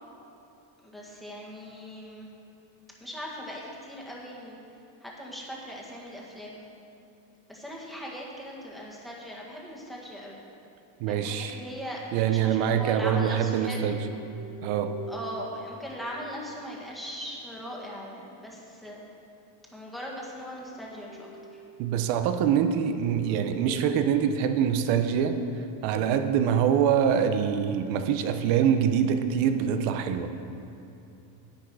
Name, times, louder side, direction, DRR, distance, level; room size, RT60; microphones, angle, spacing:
voice 1, 0.8-2.3 3.0-4.6 5.0-6.6 7.5-10.4 11.1-13.8 15.1-19.0 19.7-21.6, equal, ahead, -4 dB, 1.6 m, -39 dB
voice 2, 11.0-11.6 12.1-14.0 14.6-14.9 21.8-25.4 25.8-30.3, right 8 dB, 65° right, 8 dB, 0.9 m, -24 dB
sound 1, 12.6-16.4 20.8-25.2, equal, 70° left, 2.6 m, -45 dB
10.5 x 8.5 x 4.8 m, 2.8 s
cardioid pair, 135°, 50 cm